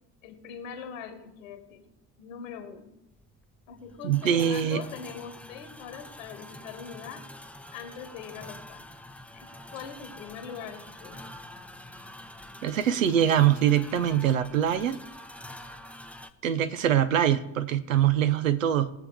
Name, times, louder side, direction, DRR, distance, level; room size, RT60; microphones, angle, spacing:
voice 1, 0.2-1.8 2.2-2.9 3.7-7.3 7.7-8.8 9.3-11.2, left 7 dB, 75° left, 7 dB, 1.6 m, -42 dB
sound 1, 3.1-16.3, left 1 dB, 5° left, 0.7 m, -46 dB
voice 2, 4.0-4.8 12.6-15.0 16.4-18.9, right 10 dB, 85° right, 12 dB, 0.8 m, -23 dB
19.5 x 7.5 x 3.5 m, 0.88 s
figure-of-eight pair, 55°, 39 cm